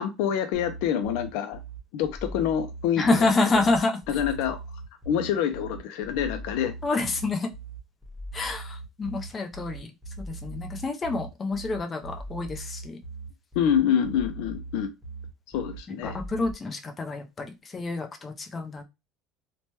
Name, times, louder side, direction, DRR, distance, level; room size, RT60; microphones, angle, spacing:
voice 1, 0.0-1.6 1.9-3.3 4.1-4.6 5.1-6.7 13.6-14.9 15.5-16.2, left 9 dB, 75° left, 0.4 m, -26 dB
sound 1, 0.5-16.5, right 3 dB, ahead, 1.1 m, -40 dB
voice 2, 3.0-4.0 6.8-7.5 8.3-9.9 10.3-13.0 15.9-18.8, left 3 dB, 20° left, 0.5 m, -28 dB
2.9 x 2.1 x 3.0 m
cardioid pair, 150°, 0 cm